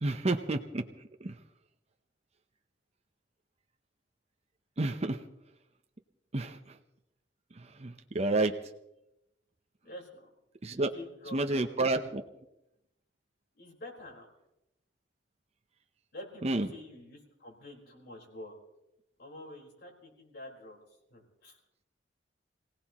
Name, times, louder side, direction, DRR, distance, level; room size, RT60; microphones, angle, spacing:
voice 1, 0.0-0.8 1.2-1.3 4.8-5.2 6.3-6.6 7.8-8.5 10.6-10.9 11.3-12.2 16.4-16.7, right 2 dB, 35° right, 6 dB, 0.8 m, -29 dB
voice 2, 9.8-10.3 10.6-11.7 13.6-14.3 16.1-18.5 19.2-20.8 21.1-21.6, left 1 dB, 60° left, -1 dB, 4.5 m, -48 dB
26.5 x 17.0 x 3.0 m, 0.89 s
head